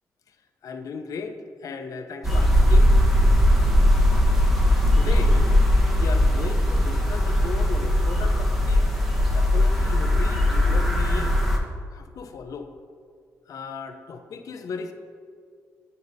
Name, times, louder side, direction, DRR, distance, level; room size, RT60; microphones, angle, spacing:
voice 1, 0.6-3.0 4.9-5.6 5.9-8.8 9.3-11.3 11.9-12.7 13.5-14.9, left 4 dB, 65° left, 6 dB, 0.6 m, -36 dB
sound 1, 2.2-11.6, left 1 dB, 5° right, 1.2 m, -19 dB
9.0 x 5.3 x 2.7 m, 2.2 s
supercardioid pair, 60°, 6 cm